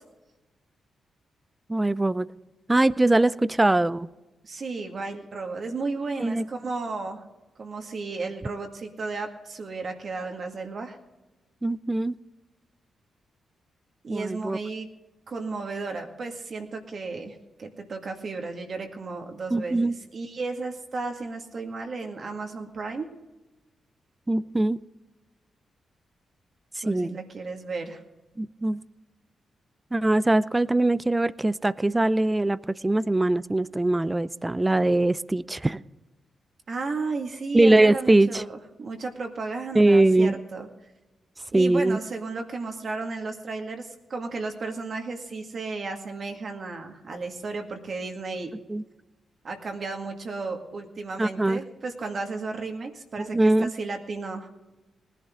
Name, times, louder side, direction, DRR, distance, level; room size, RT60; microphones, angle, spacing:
voice 1, 1.7-2.3 2.7-4.1 6.2-6.4 11.6-12.2 14.1-14.6 19.5-20.0 24.3-24.8 26.8-27.2 28.4-28.8 29.9-32.6 32.8-35.8 37.5-38.4 39.7-40.4 41.5-42.0 48.7-48.8 51.2-51.6 53.2-53.7, right 2 dB, 20° right, 18 dB, 0.5 m, -22 dB
voice 2, 4.4-7.2 7.6-11.0 14.0-14.9 15.3-23.1 26.8-28.0 36.7-40.7 41.5-48.5 49.4-54.5, right 3 dB, 55° right, 3 dB, 2.0 m, -34 dB
19.5 x 11.0 x 3.7 m, 1.1 s
supercardioid pair, 45°, 0 cm